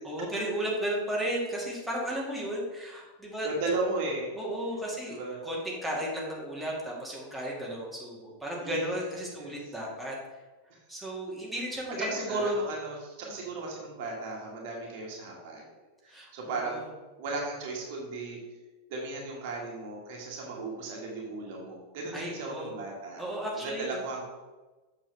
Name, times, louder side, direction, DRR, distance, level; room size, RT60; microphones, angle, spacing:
voice 1, 0.0-3.5 4.3-5.2 5.4-10.4 10.9-12.5 16.1-16.9 22.1-22.7 23.2-24.1, right 1 dB, ahead, -5 dB, 1.9 m, -34 dB
voice 2, 3.4-4.3 5.1-5.4 8.6-9.6 12.0-15.6 16.0-16.8 17.2-18.4 18.9-23.2 23.6-24.2, right 2 dB, 50° right, -1 dB, 1.7 m, -35 dB
7.5 x 6.5 x 3.3 m, 1.2 s
figure-of-eight pair, 90°, 0 cm